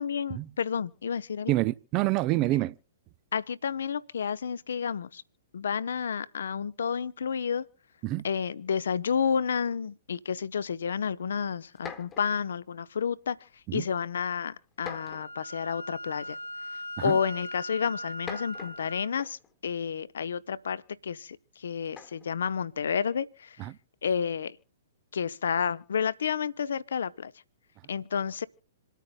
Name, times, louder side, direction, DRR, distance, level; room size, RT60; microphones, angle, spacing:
voice 1, 0.0-1.5 3.3-5.2 5.5-7.7 8.2-13.4 13.7-16.4 16.7-23.7 24.0-24.6 25.1-27.3 27.9-28.5, left 7 dB, 60° left, 0.7 m, -30 dB
voice 2, 1.5-2.7 8.0-8.2 13.7-13.8 17.0-17.2 23.6-23.8, right 17 dB, 30° right, 0.5 m, -27 dB
sound 1, 11.1-11.2 11.7-12.5 13.4-13.7 14.8-15.5 16.6-16.7 18.0-19.6 21.9-22.4, left 6 dB, 20° left, 1.3 m, -44 dB
Wind instrument woodwind instrument, 14.9-19.1, left 1 dB, 80° left, 1.1 m, -40 dB
27.5 x 9.1 x 2.4 m
figure-of-eight pair, 110°, 0 cm